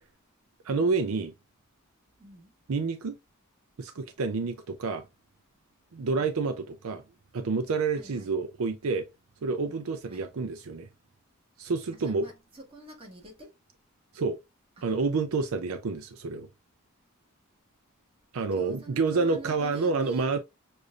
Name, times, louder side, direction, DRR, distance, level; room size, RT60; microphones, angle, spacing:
voice 1, 0.6-1.3 2.7-3.2 3.8-5.1 5.9-7.0 7.3-9.1 9.4-10.9 11.6-12.3 14.1-14.4 14.8-16.5 18.3-20.4, right 4 dB, 75° right, 0.5 m, -28 dB
voice 2, 2.2-2.5 4.3-4.5 6.0-6.3 7.9-8.3 10.1-10.3 11.9-13.6 14.8-14.9 18.4-20.3, right 1 dB, 25° right, 1.5 m, -47 dB
6.6 x 2.6 x 2.4 m
head